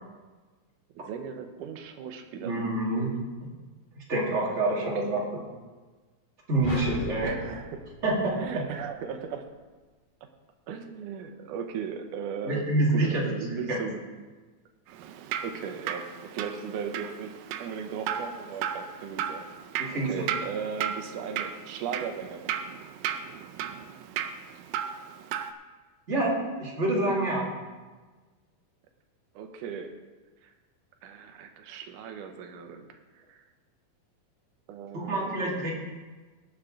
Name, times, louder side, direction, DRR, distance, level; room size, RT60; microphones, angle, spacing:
voice 1, 0.9-2.5 5.0-5.3 7.2-7.8 8.4-9.5 10.7-14.0 15.4-19.5 19.9-22.5 29.4-30.0 30.4-30.5 31.0-33.4 34.7-35.7, right 7 dB, 75° right, 5 dB, 2.3 m, -37 dB
voice 2, 2.4-3.1 4.0-5.5 6.5-7.4 8.0-8.6 12.4-13.9 19.8-20.1 26.1-27.5 34.9-35.7, right 2 dB, 25° right, -4 dB, 2.1 m, -27 dB
sound 1, 6.6-9.0, equal, 25° left, 1.1 m, -38 dB
Drip, 14.9-25.5, right 9 dB, 90° right, 2.4 m, -35 dB
18.5 x 7.2 x 3.8 m, 1.3 s
omnidirectional pair, 3.9 m